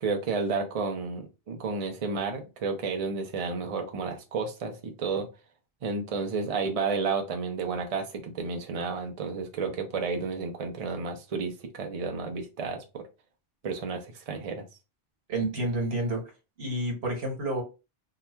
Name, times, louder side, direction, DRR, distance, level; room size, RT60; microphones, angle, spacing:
voice 1, 0.0-5.3 5.8-13.0 13.6-14.6, right 4 dB, 45° right, 4 dB, 0.5 m, -31 dB
voice 2, 15.3-16.2 16.6-17.6, right 1 dB, 75° right, 1 dB, 1.3 m, -29 dB
2.8 x 2.3 x 3.2 m, 0.29 s
omnidirectional pair, 1.1 m